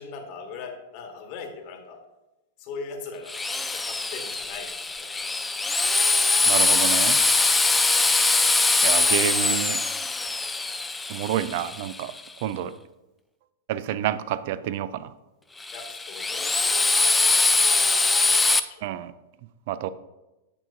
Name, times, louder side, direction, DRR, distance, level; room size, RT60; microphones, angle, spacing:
voice 1, 0.0-2.0 2.6-5.1 5.8-6.3 15.7-17.5 17.8-18.8, left 4 dB, 50° left, 3 dB, 1.3 m, -41 dB
Drill, 3.3-12.2 15.6-18.6, left 3 dB, 10° left, 0.4 m, -22 dB
voice 2, 6.5-7.2 8.8-9.8 11.1-12.1 12.4-12.7 13.7-15.1 18.8-19.1 19.7-19.9, right 11 dB, 55° right, 15 dB, 0.4 m, -28 dB
8.7 x 5.9 x 2.6 m, 1.0 s
hypercardioid pair, 110°, 0 cm